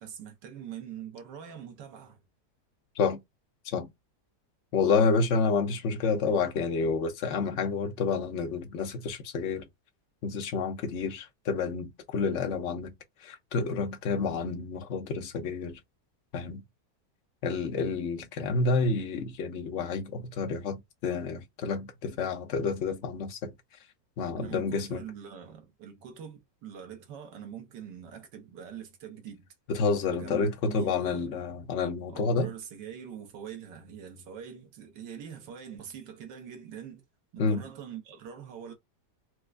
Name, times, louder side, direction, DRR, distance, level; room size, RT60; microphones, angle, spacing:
voice 1, 0.0-2.2 24.3-29.5 30.1-31.4 32.1-37.0 37.3-38.7, right 8 dB, 85° right, 1.6 m, -44 dB
voice 2, 4.7-9.6 10.2-12.9 13.2-15.8 16.3-16.6 17.4-23.5 24.2-25.0 29.7-32.5 37.4-37.6, left 4 dB, 55° left, 0.8 m, -29 dB
4.4 x 2.2 x 2.4 m
omnidirectional pair, 1.9 m